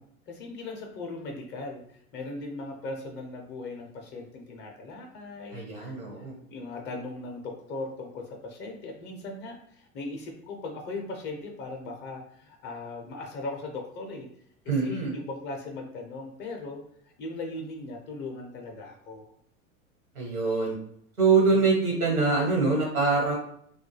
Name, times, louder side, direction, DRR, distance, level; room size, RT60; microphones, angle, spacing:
voice 1, 0.3-14.3 14.8-19.3, left 2 dB, 25° left, 2 dB, 0.4 m, -39 dB
voice 2, 5.5-6.3 14.7-15.1 20.1-20.8 21.2-23.3, right 4 dB, 85° right, -1 dB, 1.2 m, -24 dB
2.2 x 2.1 x 3.0 m, 0.68 s
hypercardioid pair, 90°, 42 cm